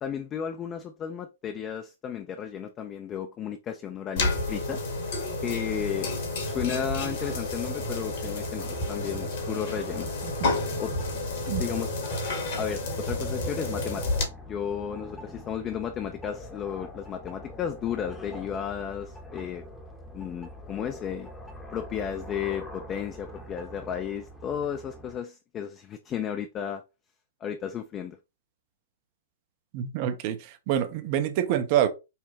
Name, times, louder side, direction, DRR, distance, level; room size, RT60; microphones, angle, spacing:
voice 1, 0.0-4.8 5.4-6.1 6.4-10.1 10.8-10.9 11.6-11.9 12.6-14.1 14.5-19.6 20.1-21.3 21.7-26.8 27.4-28.2, left 8 dB, 25° left, 0.4 m, -33 dB
sound 1, 4.2-12.5, left 7 dB, 85° left, 2.4 m, -40 dB
sound 2, 4.2-14.2, left 2 dB, 55° left, 1.3 m, -31 dB
sound 3, 5.8-25.2, left 1 dB, 5° left, 0.8 m, -45 dB
voice 2, 29.7-31.9, right 10 dB, 40° right, 0.5 m, -26 dB
5.6 x 2.1 x 2.8 m
figure-of-eight pair, 110°, 0 cm